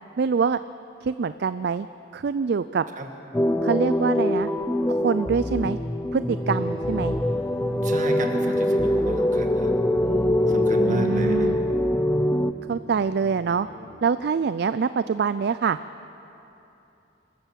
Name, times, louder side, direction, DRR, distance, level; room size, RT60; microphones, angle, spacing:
voice 1, 0.2-0.6 1.0-1.9 2.1-2.8 3.6-4.5 4.9-5.8 6.1-7.2 10.9-11.6 12.7-13.7 14.0-15.8, right 5 dB, 55° right, 13 dB, 0.4 m, -25 dB
sound 1, 3.3-12.5, left 1 dB, 10° left, 0.5 m, -23 dB
sound 2, 6.3-13.9, equal, 75° right, 6.1 m, -42 dB
voice 2, 7.8-9.7 10.5-11.5, right 1 dB, 40° right, 3 dB, 2.0 m, -33 dB
26.0 x 13.5 x 7.5 m, 3.0 s
head